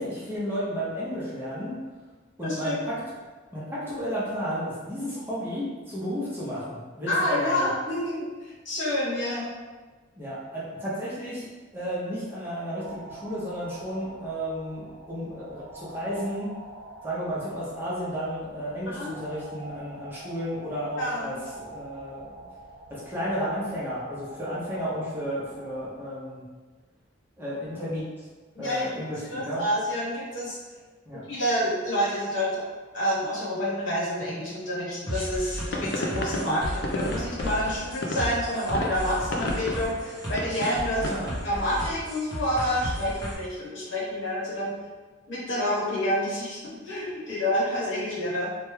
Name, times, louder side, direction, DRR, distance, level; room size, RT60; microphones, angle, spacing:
voice 1, 0.0-1.8 2.4-3.0 3.5-7.7 10.2-11.5 11.7-16.5 17.0-22.4 22.9-26.5 27.4-28.0 28.6-29.6 31.1-31.3 41.0-41.4, equal, 10° right, -9 dB, 0.7 m, -32 dB
voice 2, 2.4-2.8 7.1-9.5 19.0-19.1 21.0-21.4 28.5-29.0 29.3-30.6 31.3-32.6 32.9-44.7 45.3-48.5, equal, 70° left, -7 dB, 1.1 m, -28 dB
sound 1, 12.8-26.1, right 1 dB, 80° right, 0.6 m, -45 dB
sound 2, 35.1-43.3, equal, 20° left, 0.8 m, -34 dB
sound 3, 35.7-41.3, left 1 dB, 50° left, 0.4 m, -33 dB
3.3 x 2.2 x 3.1 m, 1.3 s
head